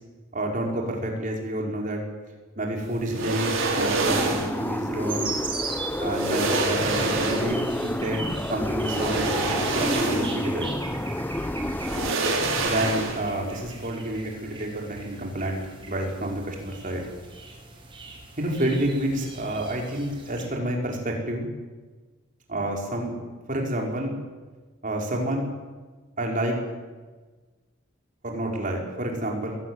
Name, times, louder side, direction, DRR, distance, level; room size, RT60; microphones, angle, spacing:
voice 1, 0.3-2.0 2.6-3.5 3.8-5.3 6.0-10.7 12.6-15.6 15.9-17.0 18.4-21.5 22.5-23.1 23.5-24.1 24.8-25.5 26.2-26.6 28.2-29.6, right 1 dB, 40° right, 0 dB, 5.3 m, -29 dB
sound 1, 3.1-4.6 5.6-5.7 6.1-7.7 8.8-10.5 10.9-11.0 11.8-13.4 13.7-13.8, right 3 dB, 75° right, 4.9 m, -27 dB
sound 2, 4.1-12.1, left 1 dB, 10° left, 0.7 m, -29 dB
sound 3, 5.1-20.5, right 3 dB, 25° right, 4.8 m, -40 dB
22.5 x 17.5 x 9.8 m, 1.3 s
head